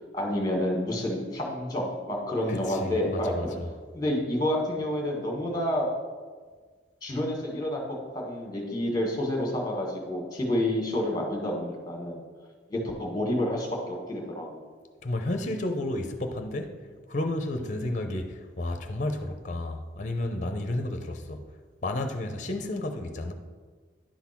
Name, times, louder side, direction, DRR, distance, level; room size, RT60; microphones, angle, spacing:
voice 1, 0.1-3.5 3.9-5.9 7.0-7.8 8.1-12.2 12.7-14.6 17.6-17.7, left 1 dB, 20° left, 1.6 m, -29 dB
voice 2, 2.5-3.7 15.0-16.8 17.1-21.4 21.8-23.3, left 1 dB, 40° left, 0.6 m, -32 dB
10.5 x 4.0 x 5.9 m
head